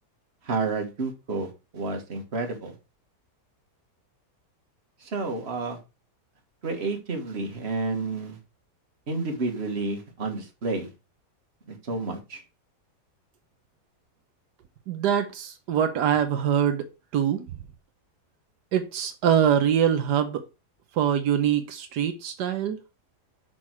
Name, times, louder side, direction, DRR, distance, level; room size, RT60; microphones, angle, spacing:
voice 1, 0.4-2.7 5.0-5.8 6.6-8.4 9.1-10.9 11.7-12.4, right 3 dB, 40° right, 1.9 m, -30 dB
voice 2, 14.9-16.9 17.1-17.5 18.7-20.4 21.0-22.8, right 9 dB, 85° right, 1.4 m, -24 dB
6.3 x 6.0 x 4.6 m
omnidirectional pair, 1.7 m